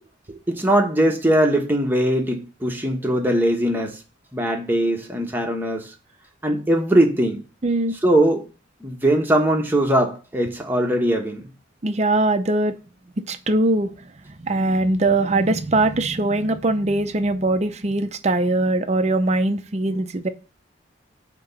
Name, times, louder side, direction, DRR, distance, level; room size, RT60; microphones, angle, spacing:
voice 1, 0.5-4.0 4.3-5.9 6.4-7.4 8.0-8.5 8.8-11.4, right 1 dB, 10° right, 1.1 m, -20 dB
voice 2, 7.6-8.0 11.8-12.8 13.2-14.1 14.4-20.3, right 2 dB, 35° right, 0.6 m, -21 dB
8.6 x 3.0 x 5.6 m
head